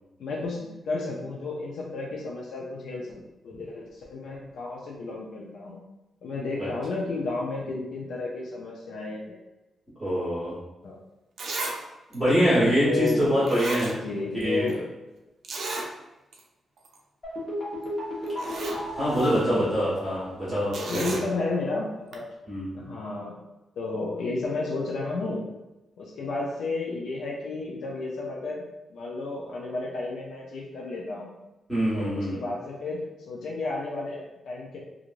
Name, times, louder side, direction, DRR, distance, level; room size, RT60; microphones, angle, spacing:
voice 1, 0.2-5.8 6.2-9.4 10.8-11.0 12.8-13.3 13.9-14.8 19.1-19.7 20.8-22.2 22.7-23.3 23.8-25.4 26.0-28.6 28.9-31.3 31.9-33.0 33.3-34.8, left 3 dB, 85° left, -3 dB, 0.5 m, -32 dB
voice 2, 10.0-10.5 12.1-14.0 14.4-14.8 19.0-21.0 22.5-22.8 31.7-32.3, equal, 5° right, -12 dB, 1.2 m, -24 dB
Zipper (clothing), 10.8-10.9 11.4-11.8 12.1-12.2 13.1-13.2 13.4-14.4 14.7-14.8 15.4-15.9 16.3-16.4 16.8-17.0 17.8-17.9 18.2-18.8 20.7-21.3 22.1-22.2, right 3 dB, 60° right, 0.4 m, -33 dB
sound 1, 17.2-20.7 20.9-21.0, equal, 30° left, 1.0 m, -34 dB
3.0 x 2.4 x 2.5 m, 1.0 s
wide cardioid pair, 175°, 0 cm